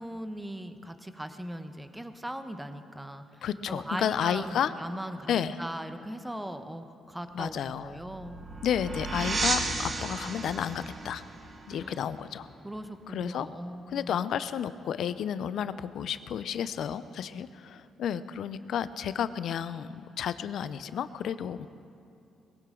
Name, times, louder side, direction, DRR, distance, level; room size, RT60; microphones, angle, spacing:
voice 1, 0.0-8.4 11.7-12.0 12.6-14.2, right 1 dB, 10° right, 8 dB, 1.0 m, -39 dB
voice 2, 3.4-4.7 5.3-5.6 7.3-7.9 8.6-11.2 11.7-12.5 13.1-13.5 13.9-21.7, left 9 dB, 70° left, 14 dB, 0.6 m, -31 dB
sound 1, 7.4-12.8, right 3 dB, 35° right, 1.6 m, -34 dB
21.0 x 16.5 x 3.8 m, 2.6 s
cardioid pair, 90°, 0 cm